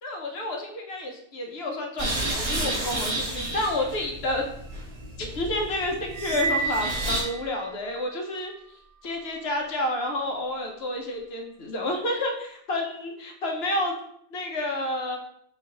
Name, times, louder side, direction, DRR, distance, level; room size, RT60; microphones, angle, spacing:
voice 1, 0.0-4.4 5.2-8.5 9.0-13.9 14.3-15.2, left 1 dB, 50° left, 2 dB, 0.8 m, -30 dB
sound 1, 2.0-7.2, right 1 dB, 25° right, 1.2 m, -31 dB
sound 2, 6.1-8.0, right 4 dB, 70° right, 1.0 m, -31 dB
4.4 x 3.2 x 3.8 m, 0.71 s
omnidirectional pair, 1.6 m